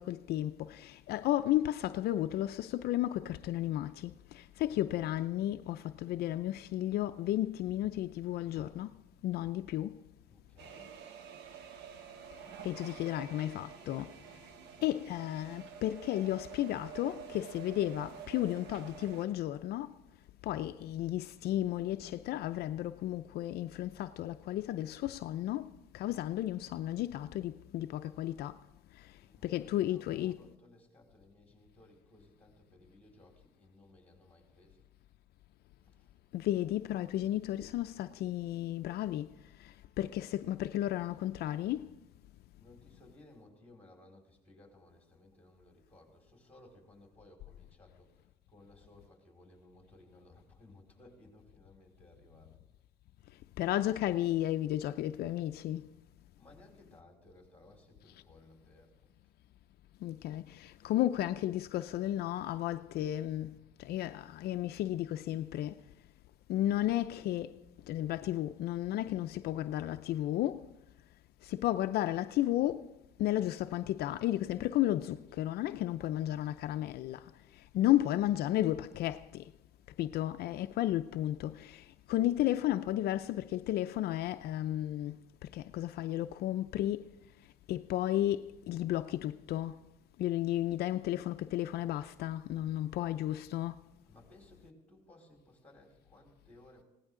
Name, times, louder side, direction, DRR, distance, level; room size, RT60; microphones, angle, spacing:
voice 1, 0.0-8.9 9.2-10.0 12.6-14.1 14.8-19.9 20.4-25.7 25.9-28.5 29.4-30.4 36.3-39.3 40.0-41.9 53.6-55.9 60.0-65.8 66.5-67.5 67.9-70.7 71.4-72.9 73.2-77.2 77.7-79.4 80.0-85.2 85.5-87.1 87.7-89.8 90.2-93.8, left 13 dB, 70° left, 0.5 m, -33 dB
voice 2, 10.3-11.0 29.2-34.9 35.8-36.1 42.6-52.6 56.4-59.1 94.0-96.8, left 1 dB, 10° left, 4.6 m, -60 dB
sound 1, 10.6-19.3, right 8 dB, 85° right, 1.3 m, -49 dB
20.0 x 17.0 x 3.7 m
cardioid pair, 110°, 17 cm